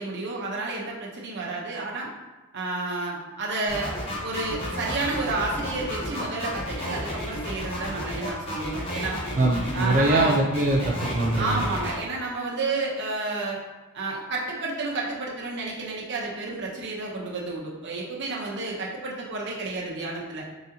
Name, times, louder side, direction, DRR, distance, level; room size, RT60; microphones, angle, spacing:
voice 1, 0.0-2.1 2.5-9.2 9.7-10.4 11.4-13.6 13.9-20.5, right 3 dB, 55° right, -3 dB, 0.8 m, -31 dB
sound 1, 3.7-11.9, left 1 dB, 25° left, 1.0 m, -33 dB
voice 2, 9.3-11.6, right 2 dB, 35° right, -1 dB, 0.4 m, -23 dB
4.0 x 3.8 x 2.8 m, 1.1 s
head